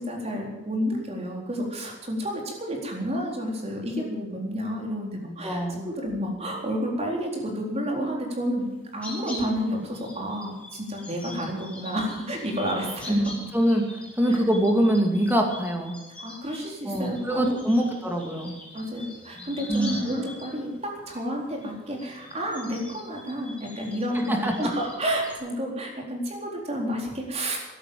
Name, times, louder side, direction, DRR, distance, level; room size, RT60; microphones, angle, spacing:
voice 1, 0.0-13.2 14.3-14.4 16.2-17.9 18.7-27.6, equal, 35° right, 0 dB, 4.0 m, -30 dB
voice 2, 5.4-5.9 13.1-16.0 16.9-18.5 19.7-20.0 24.1-24.7, right 1 dB, 10° right, 2 dB, 2.4 m, -24 dB
sound 1, 8.6-25.4, left 2 dB, 5° left, 4.5 m, -44 dB
14.0 x 11.0 x 8.7 m, 1.1 s
head